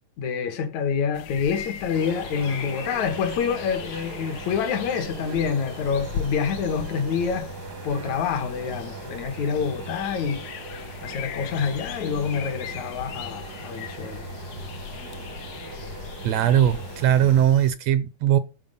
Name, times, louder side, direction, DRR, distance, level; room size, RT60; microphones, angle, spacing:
voice 1, 0.2-7.5 7.8-10.5 11.0-14.2, left 6 dB, 75° left, 2.5 m, -27 dB
sound 1, 1.1-17.7, left 7 dB, 90° left, 2.6 m, -39 dB
sound 2, 1.9-17.4, right 4 dB, 60° right, 1.0 m, -39 dB
voice 2, 16.2-18.4, right 10 dB, 75° right, 1.6 m, -20 dB
13.0 x 4.4 x 5.4 m
omnidirectional pair, 3.4 m